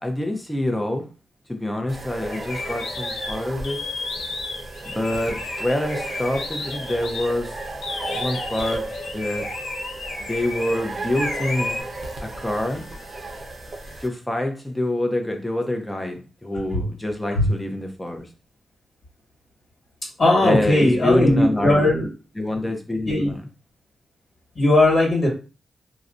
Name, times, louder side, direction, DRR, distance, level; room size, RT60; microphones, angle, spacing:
voice 1, 0.0-1.0 1.5-3.8 4.8-7.6 8.1-8.8 9.1-9.5 10.3-11.8 12.2-12.9 14.0-18.3 20.4-21.9 22.4-23.4, left 1 dB, 15° left, 0.7 m, -26 dB
sound 1, 1.9-14.1, right 2 dB, 50° right, 0.7 m, -34 dB
sound 2, 2.3-7.3 7.8-10.8 11.1-11.8, left 3 dB, 75° left, 0.5 m, -32 dB
voice 2, 20.2-22.1 23.1-23.3 24.5-25.3, left 1 dB, 50° left, 1.5 m, -18 dB
2.4 x 2.1 x 2.5 m
supercardioid pair, 45°, 0 cm